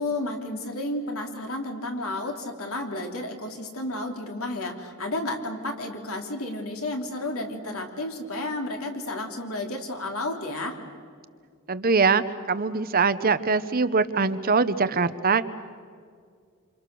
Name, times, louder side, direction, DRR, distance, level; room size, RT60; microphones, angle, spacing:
voice 1, 0.0-10.8, left 2 dB, 70° left, 3 dB, 3.4 m, -32 dB
voice 2, 11.7-15.4, right 4 dB, 40° right, 12 dB, 0.9 m, -23 dB
27.5 x 27.5 x 6.9 m, 2.1 s
head